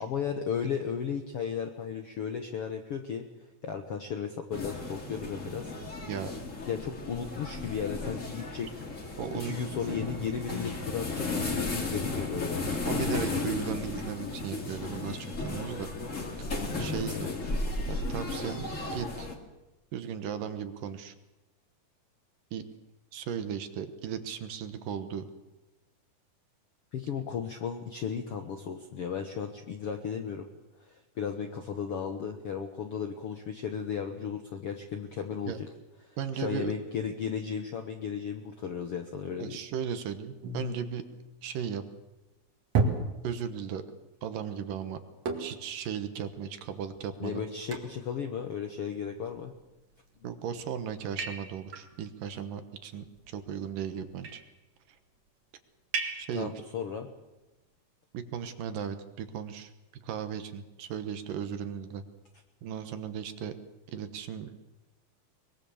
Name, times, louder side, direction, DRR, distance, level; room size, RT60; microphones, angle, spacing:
voice 1, 0.0-3.2 3.6-5.7 6.7-8.7 9.3-12.8 16.8-17.4 26.9-30.5 30.8-35.7 36.3-39.6 47.2-49.6 56.3-57.1, left 7 dB, 65° left, 6 dB, 1.4 m, -35 dB
sound 1, 4.5-19.3, left 3 dB, 25° left, 2.0 m, -34 dB
voice 2, 9.2-9.6 12.9-15.9 16.8-17.3 17.9-19.3 19.9-21.1 22.5-22.6 23.1-25.3 35.5-35.6 36.2-36.7 39.4-41.0 41.4-41.8 43.2-43.8 44.2-45.0 45.4-47.5 50.2-54.4 54.9-55.0 56.2-56.5 58.1-59.7 60.0-62.0 62.6-63.5 63.9-64.6, right 8 dB, 70° right, 10 dB, 2.6 m, -36 dB
sound 2, 40.4-41.9 42.7-43.7 45.3-45.8 46.3-46.4 46.9-47.0 47.7-48.1 49.2-49.6 50.3-50.6 51.2-51.9 53.0-53.6 54.1-54.5 55.9-56.5, right 3 dB, 50° right, 3.0 m, -34 dB
23.0 x 22.0 x 7.1 m, 1.0 s
omnidirectional pair, 4.4 m